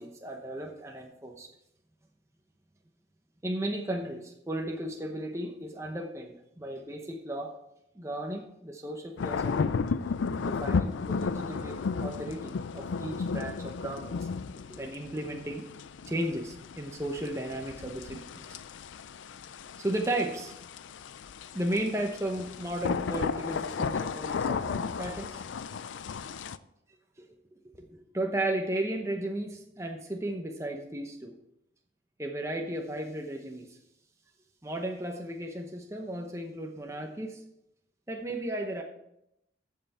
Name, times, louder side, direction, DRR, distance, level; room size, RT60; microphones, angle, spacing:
voice 1, 0.0-1.5 3.4-7.6 7.9-9.7 10.4-14.3 14.7-15.7 16.1-18.6 19.8-20.5 21.5-25.4 27.2-27.3 27.7-31.3 32.2-33.8 34.6-37.4 38.1-38.8, right 1 dB, 15° right, 2 dB, 0.8 m, -35 dB
sound 1, 9.2-26.6, left 5 dB, 85° left, 0.4 m, -34 dB
15.0 x 5.7 x 4.3 m, 0.82 s
head